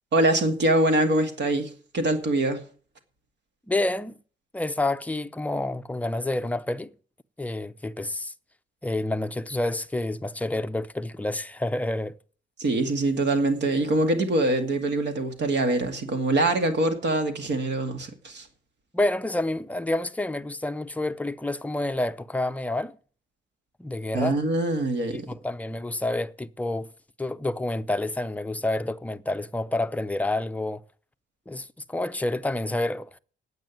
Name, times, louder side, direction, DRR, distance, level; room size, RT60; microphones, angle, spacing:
voice 1, 0.1-2.6 12.6-18.5 24.1-25.3, right 2 dB, 60° right, 2.3 m, -24 dB
voice 2, 3.7-4.1 4.5-6.9 7.4-8.3 8.8-12.2 18.9-23.0 23.8-24.4 25.1-26.9 27.2-30.8 31.5-33.1, left 2 dB, 5° left, 0.6 m, -28 dB
9.2 x 8.0 x 9.2 m
cardioid pair, 90°, 20 cm